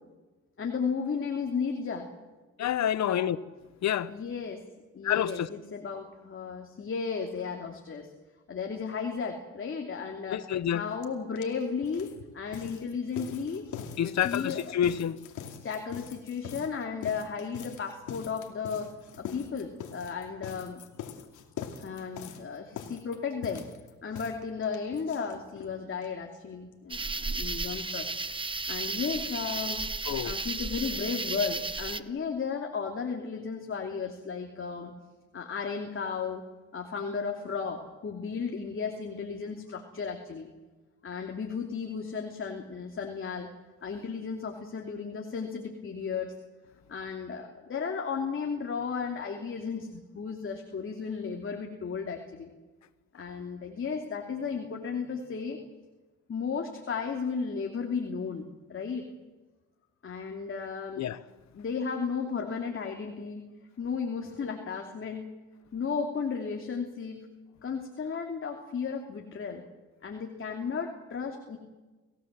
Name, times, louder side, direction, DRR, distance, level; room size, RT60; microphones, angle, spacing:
voice 1, 0.6-2.1 3.0-3.2 4.1-4.6 4.9-8.1 8.5-13.7 14.0-14.6 15.5-20.8 21.8-23.7 24.0-28.1 28.7-29.9 30.2-34.9 35.3-36.4 36.7-40.5 41.0-43.5 43.8-46.4 46.9-52.5 53.1-55.6 56.3-59.1 60.0-61.1 61.5-63.5 63.8-65.3 65.7-67.2 67.6-69.7 70.0-71.6, left 5 dB, 45° left, 2.9 m, -34 dB
voice 2, 2.6-3.4 3.8-4.1 5.0-5.5 10.3-10.8 14.0-15.2 30.1-30.3 61.0-61.2, left 10 dB, 65° left, 1.1 m, -28 dB
sound 1, 11.0-11.1 11.4-25.7 26.0-26.1 26.3-26.4 26.7-26.8, left 8 dB, 80° left, 2.6 m, -43 dB
sound 2, 26.9-32.0, right 3 dB, 15° right, 1.0 m, -33 dB
29.0 x 17.0 x 7.6 m
cardioid pair, 90°, 30 cm